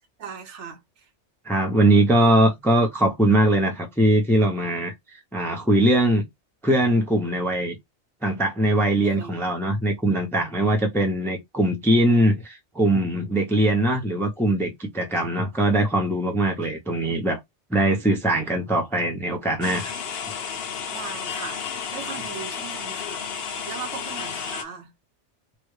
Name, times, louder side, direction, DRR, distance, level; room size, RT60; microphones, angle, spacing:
voice 1, 0.2-0.8 2.2-2.3 9.0-9.4 15.1-15.2 20.9-21.6 21.9-23.2 23.7-24.9, right 6 dB, 75° right, 1.1 m, -38 dB
voice 2, 1.5-4.9 5.3-6.2 6.6-7.8 8.2-17.4 17.7-19.9, right 1 dB, 5° left, 0.5 m, -21 dB
sound 1, 19.6-24.6, left 7 dB, 60° left, 0.8 m, -32 dB
3.6 x 2.1 x 3.2 m
omnidirectional pair, 1.2 m